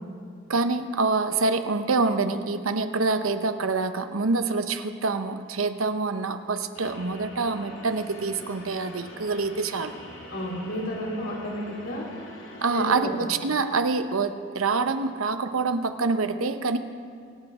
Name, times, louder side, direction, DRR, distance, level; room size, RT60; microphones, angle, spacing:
voice 1, 0.5-10.0 12.6-16.8, right 3 dB, 90° right, 9 dB, 0.8 m, -26 dB
sound 1, 6.7-13.0, left 1 dB, 65° left, 2.6 m, -44 dB
voice 2, 10.3-12.1 12.7-13.1, equal, 80° left, -4 dB, 3.6 m, -31 dB
25.0 x 8.6 x 4.9 m, 2.2 s
head